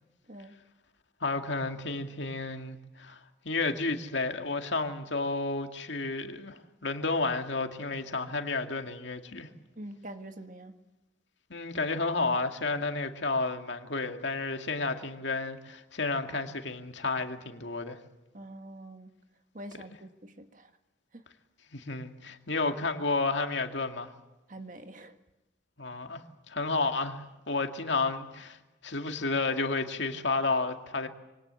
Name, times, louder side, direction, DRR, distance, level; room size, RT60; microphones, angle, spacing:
voice 1, 1.2-3.2 3.4-9.5 11.5-18.0 21.7-24.1 25.8-31.1, left 3 dB, 70° left, 2.2 m, -31 dB
voice 2, 9.8-10.7 18.3-19.1 19.5-20.7 21.1-21.2 24.5-25.2, right 1 dB, 40° right, 1.7 m, -45 dB
26.0 x 23.5 x 8.2 m
head